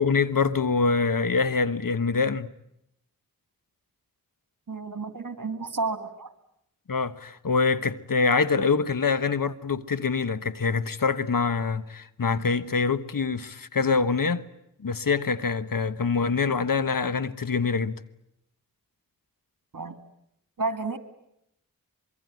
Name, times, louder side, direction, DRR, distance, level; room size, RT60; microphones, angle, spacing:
voice 1, 0.0-2.5 6.9-14.4 14.8-18.0, left 4 dB, 70° left, 1.2 m, -25 dB
voice 2, 4.7-6.3 19.7-19.9 20.6-21.0, right 3 dB, 65° right, 2.4 m, -31 dB
25.0 x 23.0 x 9.5 m
wide cardioid pair, 55°, 34 cm